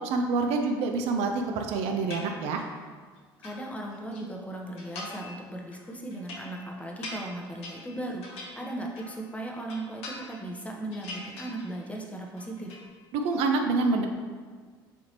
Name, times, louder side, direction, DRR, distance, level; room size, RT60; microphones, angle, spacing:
voice 1, 0.0-2.6 13.1-14.1, right 3 dB, 60° right, 4 dB, 0.4 m, -27 dB
sound 1, 2.1-2.8 3.2-4.2 4.8-5.4 5.7-9.2 9.5-10.6 10.9-12.0 12.3-12.9, left 2 dB, 55° left, 0.7 m, -43 dB
voice 2, 3.4-12.8, right 1 dB, 10° left, 0 dB, 0.6 m, -37 dB
4.1 x 2.8 x 2.8 m, 1.5 s
figure-of-eight pair, 60°, 12 cm